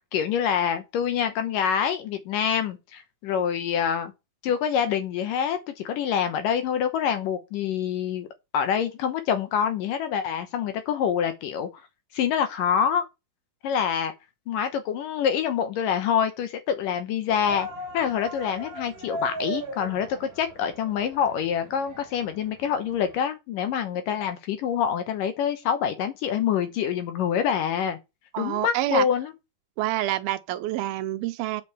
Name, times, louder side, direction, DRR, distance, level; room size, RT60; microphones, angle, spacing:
voice 1, 0.1-4.1 4.4-8.3 8.5-11.7 12.1-13.1 13.6-14.1 14.5-17.7 17.9-28.0 28.4-29.3, left 8 dB, 70° left, 2.4 m, -26 dB
sound 1, 17.3-23.2, right 2 dB, 35° right, 1.5 m, -39 dB
voice 2, 28.3-29.1 29.8-31.6, right 15 dB, 80° right, 2.5 m, -27 dB
8.4 x 5.2 x 6.9 m
omnidirectional pair, 4.5 m